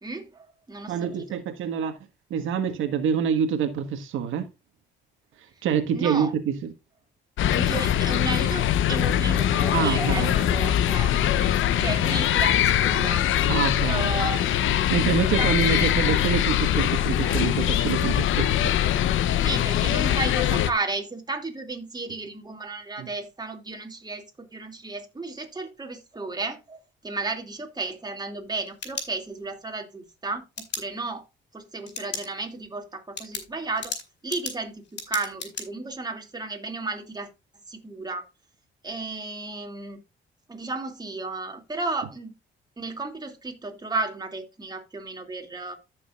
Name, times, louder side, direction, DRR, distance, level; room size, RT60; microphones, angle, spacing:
voice 1, 0.0-1.4 5.9-6.3 7.5-13.2 13.9-14.4 15.3-15.9 19.4-31.3 31.5-33.9 34.2-37.3 37.7-38.3 38.8-40.0 40.5-42.3 42.8-45.8, right 3 dB, 20° right, 2.6 m, -33 dB
voice 2, 0.9-2.0 2.3-4.5 5.6-6.7 9.7-10.3 13.5-14.1 14.9-18.7 23.0-23.1, right 8 dB, 85° right, 1.6 m, -26 dB
sound 1, 7.4-20.7, left 11 dB, 80° left, 0.9 m, -22 dB
sound 2, 9.0-14.7, right 1 dB, 5° right, 6.2 m, -42 dB
sound 3, 28.4-29.6 30.6-30.8 31.9-32.3 32.7-32.8 33.2-35.6, left 5 dB, 65° left, 4.3 m, -35 dB
14.5 x 6.6 x 2.4 m
cardioid pair, 90°, 20 cm